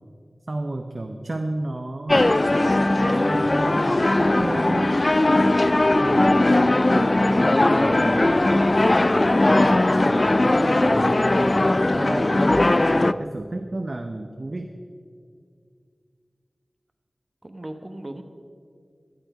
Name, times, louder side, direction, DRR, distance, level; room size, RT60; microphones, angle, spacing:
voice 1, 0.5-2.4 2.9-5.0 6.0-8.4 9.4-11.6 11.9-14.8, right 2 dB, 50° right, 5 dB, 0.8 m, -32 dB
sound 1, 2.1-13.1, left 2 dB, 40° left, 0.4 m, -19 dB
voice 2, 12.2-12.7 17.4-18.2, right 1 dB, 35° right, 6 dB, 1.1 m, -38 dB
12.5 x 12.0 x 5.0 m, 2.2 s
wide cardioid pair, 50°, 0 cm